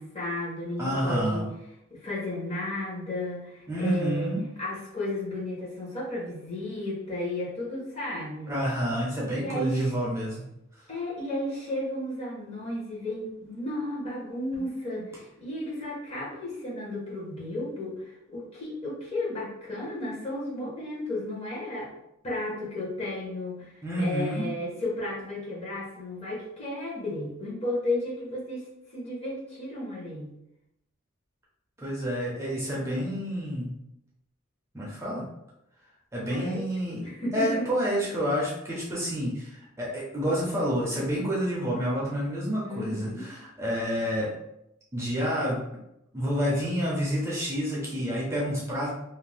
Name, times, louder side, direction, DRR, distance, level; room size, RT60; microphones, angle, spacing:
voice 1, 0.0-1.4 1.9-4.3 4.6-8.6 9.4-10.0 10.9-21.9 22.2-23.7 24.0-28.6 28.9-30.4 36.3-36.6 37.0-37.7 42.6-43.3, left 1 dB, 30° left, -5 dB, 0.9 m, -33 dB
voice 2, 0.8-1.5 3.7-4.4 8.5-10.4 14.9-15.0 20.5-20.7 23.8-24.5 31.8-33.7 34.7-35.2 36.1-44.3 44.9-45.6 46.1-48.9, equal, 15° right, -5 dB, 0.6 m, -29 dB
2.6 x 2.1 x 3.2 m, 0.82 s
head